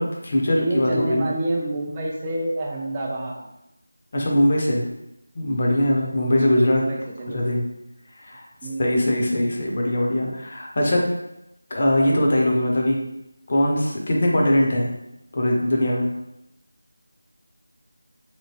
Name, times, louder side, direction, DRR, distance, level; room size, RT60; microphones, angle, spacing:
voice 1, 0.0-1.3 4.1-4.8 5.3-6.8 7.3-7.6 8.2-8.4 8.8-11.1 11.7-13.0 13.5-14.9 15.3-16.1, left 1 dB, 35° left, -2 dB, 0.6 m, -21 dB
voice 2, 0.5-3.5 6.1-7.5 8.6-9.2, right 1 dB, 15° right, -2 dB, 0.3 m, -28 dB
2.9 x 2.6 x 2.8 m, 0.85 s
figure-of-eight pair, 170°, 0 cm